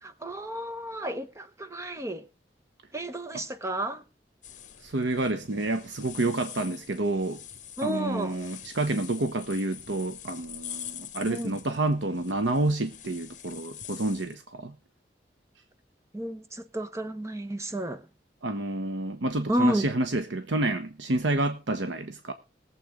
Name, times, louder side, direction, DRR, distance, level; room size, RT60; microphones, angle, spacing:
voice 1, 0.0-2.2 2.9-4.0 7.8-8.4 11.3-11.6 16.1-18.1 19.5-19.9, right 1 dB, 15° right, 1.0 m, -31 dB
sound 1, 4.4-14.3, left 10 dB, 45° left, 1.4 m, -45 dB
voice 2, 4.8-7.4 7.8-14.7 18.4-22.3, right 2 dB, 85° right, 1.0 m, -29 dB
20.5 x 7.6 x 3.6 m
head